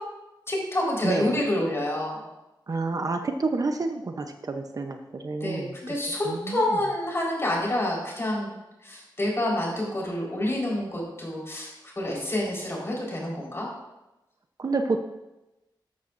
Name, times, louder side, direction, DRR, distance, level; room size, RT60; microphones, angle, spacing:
voice 1, 0.5-2.3 5.4-8.5 8.8-11.7 12.0-13.7, left 1 dB, 30° left, -3 dB, 4.3 m, -28 dB
voice 2, 1.0-1.4 2.7-5.8 6.3-6.6 14.6-15.0, right 3 dB, 45° right, 5 dB, 0.7 m, -29 dB
13.0 x 12.5 x 2.6 m, 0.98 s
wide cardioid pair, 130°, 8 cm